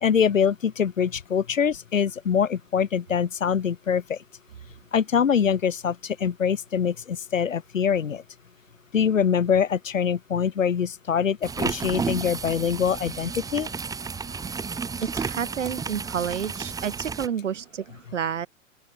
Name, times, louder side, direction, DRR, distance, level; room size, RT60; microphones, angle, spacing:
voice 1, 0.0-4.2 4.9-8.2 8.9-13.7, left 7 dB, 75° left, 0.9 m, -24 dB
sound 1, 11.4-17.3, right 5 dB, 10° right, 1.2 m, -32 dB
voice 2, 15.0-18.5, right 8 dB, 65° right, 3.1 m, -30 dB
open air
figure-of-eight pair, 100°, 39 cm